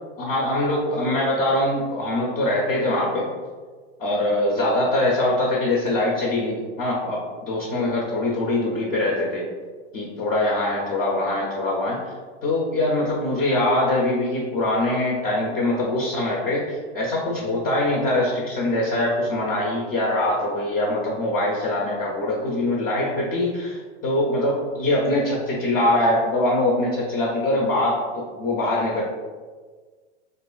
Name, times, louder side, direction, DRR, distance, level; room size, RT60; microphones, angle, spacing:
voice 1, 0.2-3.3 4.0-9.4 9.9-12.1 12.4-29.0, left 1 dB, 25° left, -3 dB, 0.4 m, -23 dB
3.0 x 2.4 x 2.3 m, 1.5 s
hypercardioid pair, 135°, 35 cm